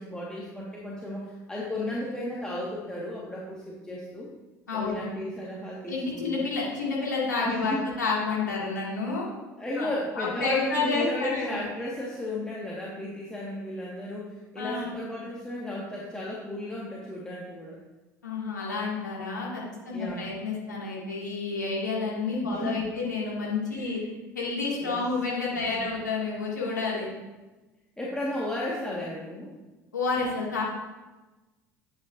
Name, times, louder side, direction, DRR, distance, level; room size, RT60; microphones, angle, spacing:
voice 1, 0.0-4.3 4.7-6.5 7.4-7.8 9.6-17.8 19.9-20.3 22.4-22.9 23.7-24.0 24.8-25.0 25.5-25.8 28.0-29.5, left 1 dB, 10° left, -5 dB, 1.5 m, -34 dB
voice 2, 4.7-5.1 5.9-9.3 9.8-9.9 10.2-11.5 14.6-14.9 18.2-24.0 24.3-27.1 29.9-30.6, left 4 dB, 85° left, -5 dB, 2.0 m, -30 dB
8.8 x 7.4 x 2.5 m, 1.2 s
figure-of-eight pair, 65°, 9 cm